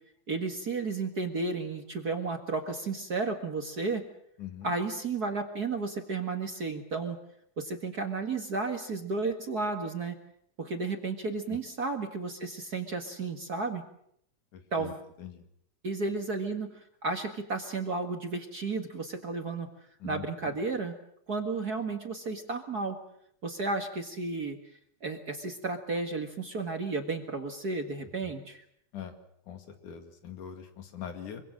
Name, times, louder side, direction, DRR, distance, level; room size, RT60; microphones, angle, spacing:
voice 1, 0.3-4.1 4.6-7.2 7.6-10.1 10.6-13.8 14.7-15.0 15.8-16.7 17.0-19.7 20.0-20.9 21.3-23.0 23.4-24.6 25.0-28.6, right 3 dB, 40° right, 5 dB, 1.8 m, -33 dB
voice 2, 14.5-14.9 15.2-15.4 20.0-20.6 28.2-28.3 28.9-29.1 29.5-31.4, left 9 dB, 85° left, 6 dB, 3.8 m, -42 dB
25.5 x 24.0 x 6.4 m, 0.68 s
omnidirectional pair, 3.5 m